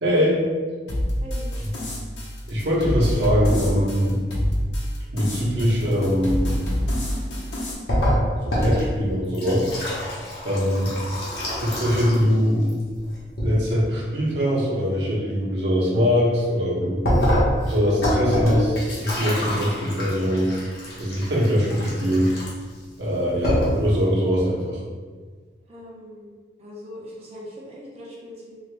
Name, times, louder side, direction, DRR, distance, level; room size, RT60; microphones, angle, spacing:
voice 1, 0.0-0.4 2.5-4.2 5.1-6.7 8.4-9.7 10.4-10.9 11.6-12.7 13.4-17.0 17.7-20.5 21.0-22.3 23.0-24.8, equal, 70° right, -6 dB, 1.0 m, -22 dB
sound 1, 0.9-7.7, equal, 85° left, 0.8 m, -28 dB
voice 2, 1.2-1.5 25.7-26.3 26.6-28.6, left 1 dB, 35° right, -5 dB, 0.8 m, -40 dB
sound 2, 7.9-12.3 12.6-13.5 17.0-22.8 23.2-23.3 23.4-23.9, equal, 60° left, 1.0 m, -25 dB
2.8 x 2.7 x 3.3 m, 1.5 s
head